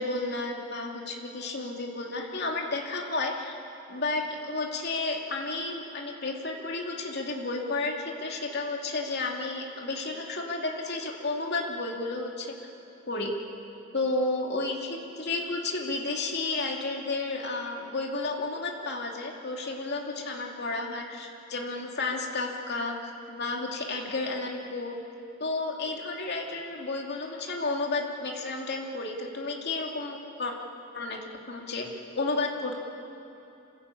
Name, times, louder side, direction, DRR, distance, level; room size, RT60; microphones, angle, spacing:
voice 1, 0.0-3.6 3.9-12.5 13.1-13.3 13.9-23.0 23.3-24.9 25.4-30.5 30.9-31.9 32.2-32.7, left 3 dB, 50° left, 0 dB, 2.7 m, -32 dB
26.5 x 15.5 x 8.6 m, 3.0 s
head